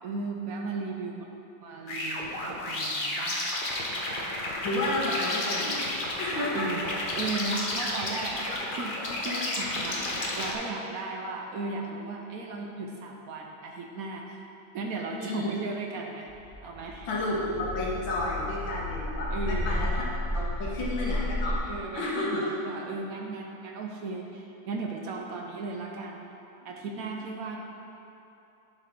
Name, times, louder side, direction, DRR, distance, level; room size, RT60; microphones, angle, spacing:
voice 1, 0.0-1.3 1.6-3.5 6.5-8.5 8.7-14.5 14.7-16.3 16.6-17.1 19.3-19.8 21.6-26.3 26.6-27.6, right 3 dB, 70° right, 1 dB, 0.8 m, -36 dB
sound 1, 1.9-10.5, left 1 dB, 50° left, 0.6 m, -32 dB
voice 2, 4.6-5.8 6.2-6.7 9.3-9.5 15.1-15.5 17.1-20.0 20.3-21.6 21.9-22.5, left 2 dB, 75° left, -5 dB, 1.9 m, -31 dB
sound 2, 16.3-21.6, left 1 dB, 20° right, 1.4 m, -32 dB
10.5 x 5.6 x 3.6 m, 3.0 s
omnidirectional pair, 2.1 m